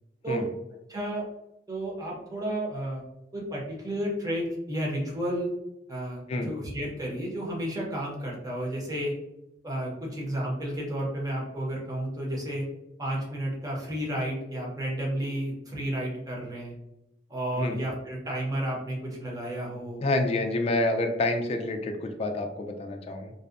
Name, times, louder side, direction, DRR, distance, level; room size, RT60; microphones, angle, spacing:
voice 1, 0.9-1.2 1.7-3.0 3.3-5.5 5.9-9.1 9.6-12.7 13.0-16.7 17.3-20.0, right 1 dB, 20° right, -3 dB, 0.7 m, -32 dB
voice 2, 20.0-23.3, left 2 dB, 35° left, 5 dB, 0.3 m, -28 dB
2.6 x 2.1 x 2.4 m, 0.89 s
head